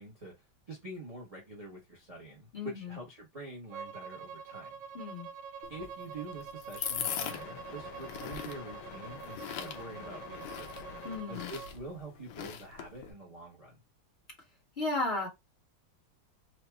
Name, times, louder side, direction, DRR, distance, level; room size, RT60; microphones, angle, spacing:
voice 1, 0.0-4.8 5.7-10.9 11.3-13.8, right 2 dB, 30° right, 0.7 m, -46 dB
voice 2, 2.5-3.0 4.9-5.3 11.0-11.5 14.8-15.3, left 2 dB, 35° left, 1.5 m, -34 dB
Bowed string instrument, 3.7-11.7, right 6 dB, 80° right, 1.3 m, -46 dB
sound 1, 5.6-13.1, left 9 dB, 70° left, 1.2 m, -41 dB
sound 2, 7.2-12.4, left 8 dB, 85° left, 1.6 m, -49 dB
4.2 x 2.4 x 3.3 m
omnidirectional pair, 2.2 m